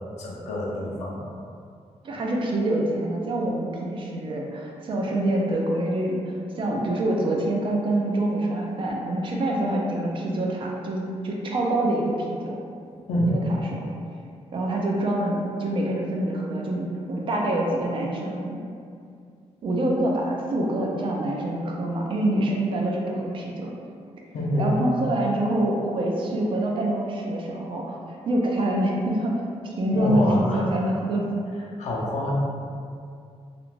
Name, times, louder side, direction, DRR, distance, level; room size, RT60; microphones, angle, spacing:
voice 1, 0.2-1.2 13.1-13.4 24.3-24.7 29.9-30.7 31.8-32.3, equal, 80° left, -5 dB, 0.6 m, -26 dB
voice 2, 2.0-12.5 13.3-13.4 13.7-13.9 14.5-18.6 19.6-23.8 24.6-28.0 28.3-29.3 29.6-31.2, right 1 dB, 45° right, -1 dB, 0.4 m, -26 dB
2.5 x 2.1 x 3.0 m, 2.3 s
wide cardioid pair, 145°, 12 cm